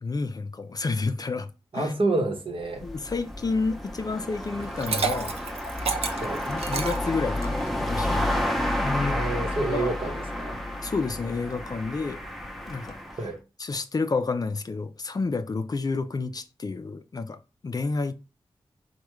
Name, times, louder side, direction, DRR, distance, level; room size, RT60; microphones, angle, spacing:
voice 1, 0.0-1.9 2.8-5.4 6.5-8.3 8.8-9.9 10.8-12.2 12.7-13.0 13.6-18.1, left 4 dB, 40° left, 0.4 m, -30 dB
voice 2, 1.7-2.9 6.2-6.5 9.1-10.6 13.2-13.4, right 2 dB, 60° right, 1.0 m, -28 dB
sound 1, 2.6-13.3, left 1 dB, ahead, 0.7 m, -31 dB
Liquid, 4.6-7.7, right 5 dB, 80° right, 0.5 m, -30 dB
3.4 x 2.2 x 3.1 m
cardioid pair, 50°, 10 cm